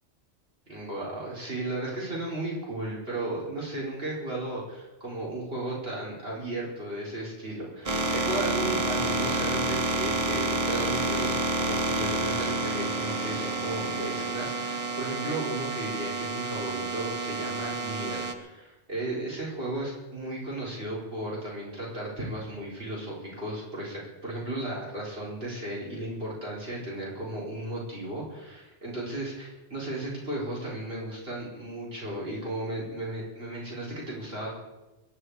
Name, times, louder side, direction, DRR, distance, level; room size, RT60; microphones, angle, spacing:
voice 1, 0.7-34.6, right 1 dB, 55° right, -5 dB, 4.7 m, -35 dB
sound 1, 7.9-18.3, right 2 dB, 30° right, 1.1 m, -29 dB
23.5 x 10.5 x 4.8 m, 1.0 s
omnidirectional pair, 1.2 m